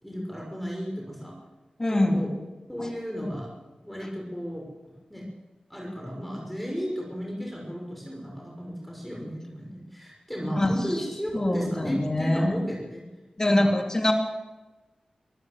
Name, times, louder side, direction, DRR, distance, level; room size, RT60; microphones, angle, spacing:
voice 1, 0.0-1.3 2.1-2.3 2.7-3.5 3.8-4.7 5.1-5.2 5.7-13.1 13.4-13.7, equal, 5° left, -1 dB, 5.6 m, -34 dB
voice 2, 1.8-2.3 10.6-10.7 11.3-12.5 13.4-14.1, left 1 dB, 25° left, 3 dB, 3.1 m, -23 dB
24.0 x 15.0 x 7.7 m, 1.1 s
wide cardioid pair, 95°, 2 cm